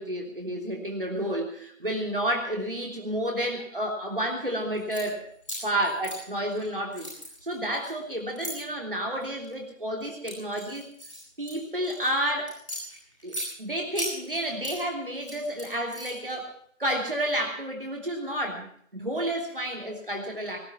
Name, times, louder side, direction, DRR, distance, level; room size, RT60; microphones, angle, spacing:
voice 1, 0.0-5.3 5.6-7.1 7.4-10.9 11.4-12.5 13.2-16.5 16.8-20.6, right 1 dB, 40° right, 1 dB, 3.2 m, -30 dB
sound 1, 4.7-5.0 5.4-6.6 6.9-8.5 9.2-9.5 10.0-12.1 12.5-13.5 13.9-14.8 15.1-16.3, equal, 25° left, 5.3 m, -37 dB
19.0 x 11.5 x 5.8 m, 0.64 s
figure-of-eight pair, 175°, 40 cm